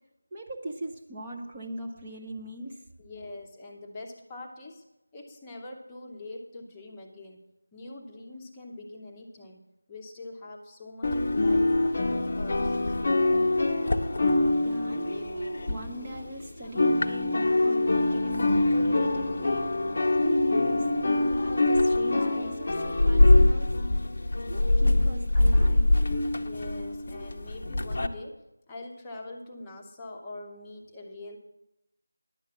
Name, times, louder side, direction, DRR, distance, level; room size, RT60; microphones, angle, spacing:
voice 1, 0.3-2.9 14.6-23.7 24.5-26.0, right 1 dB, 15° right, -1 dB, 0.7 m, -39 dB
voice 2, 3.0-4.9 5.1-7.4 7.7-9.6 9.9-13.0 26.3-31.4, left 2 dB, 10° left, -1 dB, 0.9 m, -43 dB
sound 1, 11.0-16.4 16.6-28.1, left 2 dB, 35° left, 0.7 m, -24 dB
10.5 x 7.2 x 7.2 m, 0.90 s
figure-of-eight pair, 170°, 0 cm